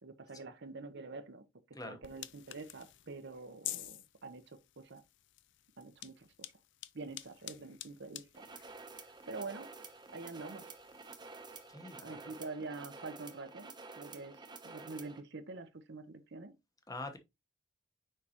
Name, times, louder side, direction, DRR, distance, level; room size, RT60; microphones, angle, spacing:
voice 1, 0.0-5.0 5.8-6.3 6.9-9.7 10.1-10.7 12.0-16.5, right 3 dB, 55° right, 0.8 m, -46 dB
sound 1, 2.0-11.7, left 14 dB, 55° left, 0.5 m, -50 dB
sound 2, 8.3-15.2, right 4 dB, 20° right, 0.9 m, -50 dB
voice 2, 11.7-12.2 16.9-17.2, left 2 dB, 15° left, 1.0 m, -44 dB
6.5 x 5.5 x 2.9 m
head